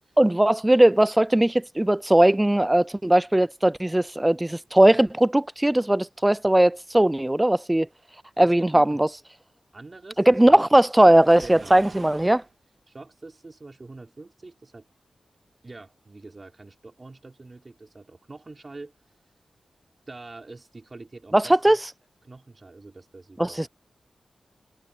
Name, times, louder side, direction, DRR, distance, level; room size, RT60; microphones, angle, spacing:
voice 1, 0.2-7.9 8.4-9.1 10.3-12.4 21.3-21.8 23.4-23.7, right 1 dB, 10° right, 0.3 m, -19 dB
voice 2, 8.4-9.0 9.7-11.0 11.4-11.9 12.2-12.3 12.9-14.9 15.6-18.9 20.1-21.8 22.2-23.7, right 3 dB, 30° right, 5.7 m, -45 dB
Waves surf, 11.0-12.5, right 4 dB, 50° right, 2.2 m, -45 dB
wide cardioid pair, 135°, 0 cm